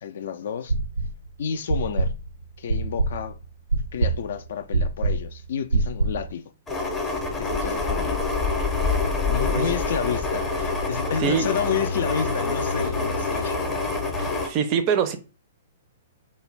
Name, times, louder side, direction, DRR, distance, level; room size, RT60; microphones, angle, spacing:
voice 1, 0.0-0.7 1.4-2.1 2.6-3.4 3.9-6.5 7.4-8.2 9.3-13.6, left 7 dB, 60° left, 0.3 m, -30 dB
sound 1, 0.7-1.3 1.7-6.3, right 3 dB, 85° right, 0.5 m, -24 dB
sound 2, 6.7-14.5, left 3 dB, 15° left, 0.6 m, -26 dB
voice 2, 14.2-15.2, right 7 dB, 35° right, 0.4 m, -24 dB
2.5 x 2.1 x 3.2 m
figure-of-eight pair, 115°, 0 cm